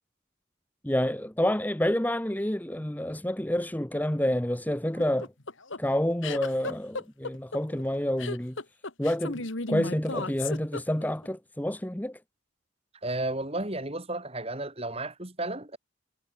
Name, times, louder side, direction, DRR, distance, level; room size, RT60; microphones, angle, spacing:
voice 1, 0.8-5.3 5.8-8.6 9.0-12.2, left 1 dB, 10° left, 0.9 m, -28 dB
sound 1, 5.0-11.3, left 3 dB, 70° left, 2.2 m, -35 dB
voice 2, 13.0-15.8, right 2 dB, 30° right, 3.4 m, -33 dB
head